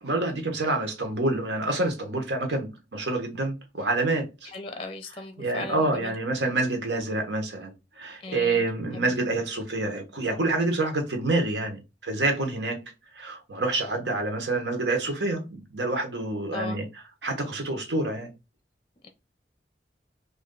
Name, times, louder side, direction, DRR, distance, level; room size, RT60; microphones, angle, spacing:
voice 1, 0.0-4.5 5.4-12.8 13.1-16.8 17.2-18.3, right 2 dB, 80° right, 1.1 m, -27 dB
voice 2, 4.5-6.1 8.2-8.6 8.9-9.1 16.5-16.8 19.0-19.1, left 3 dB, 30° left, 0.5 m, -37 dB
3.1 x 2.6 x 3.7 m
head